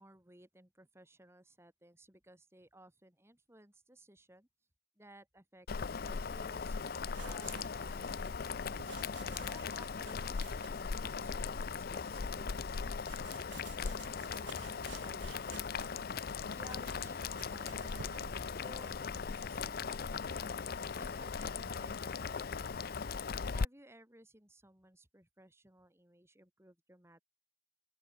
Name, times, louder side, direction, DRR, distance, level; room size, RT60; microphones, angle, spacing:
voice 1, 0.0-4.5 5.0-5.7 6.0-16.0 16.5-18.2 18.5-20.6 21.0-23.0 23.5-27.2, right 1 dB, 15° right, 3.1 m, -59 dB
Boiling, 5.7-23.6, left 5 dB, 50° left, 0.5 m, -39 dB
sound 1, 7.0-12.2 13.0-18.4, right 5 dB, 60° right, 0.7 m, -53 dB
open air
head